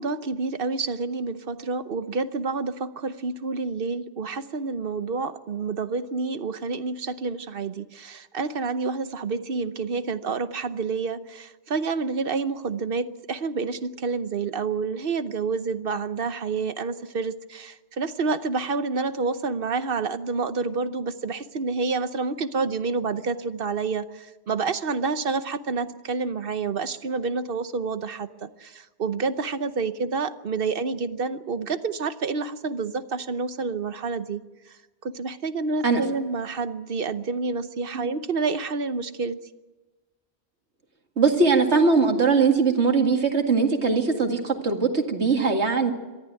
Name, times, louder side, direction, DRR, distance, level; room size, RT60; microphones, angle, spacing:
voice 1, 0.0-34.4 35.0-39.4, right 4 dB, 55° right, 12 dB, 1.1 m, -28 dB
voice 2, 41.2-45.9, right 4 dB, 75° right, 3 dB, 2.5 m, -21 dB
23.0 x 14.5 x 9.1 m, 1.2 s
omnidirectional pair, 1.1 m